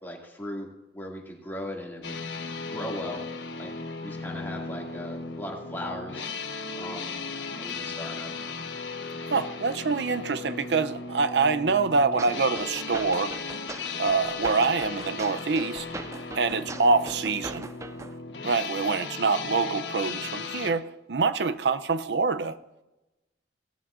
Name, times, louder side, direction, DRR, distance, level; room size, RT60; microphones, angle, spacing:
voice 1, 0.0-0.7 0.9-2.2 2.7-3.2 3.6-3.7 4.0-6.3 6.8-7.2 7.6-8.3, left 1 dB, 10° left, 2.2 m, -37 dB
sound 1, 2.0-20.7, left 4 dB, 80° left, 1.2 m, -36 dB
voice 2, 9.3-13.3 14.0-15.9 16.4-17.7 18.4-22.6, right 4 dB, 65° right, 0.6 m, -25 dB
sound 2, 12.2-18.2, right 2 dB, 15° right, 0.4 m, -41 dB
17.5 x 13.0 x 2.5 m
head